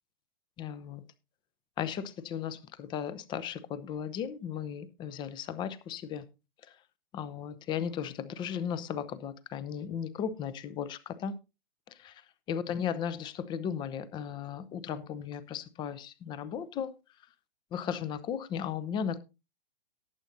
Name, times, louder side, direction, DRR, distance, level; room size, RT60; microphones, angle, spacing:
voice 1, 0.6-1.0 1.8-6.2 7.1-11.3 12.0-12.1 12.5-16.9 17.7-19.2, left 8 dB, 15° left, 0.6 m, -36 dB
18.0 x 8.0 x 2.7 m
figure-of-eight pair, 115°, 29 cm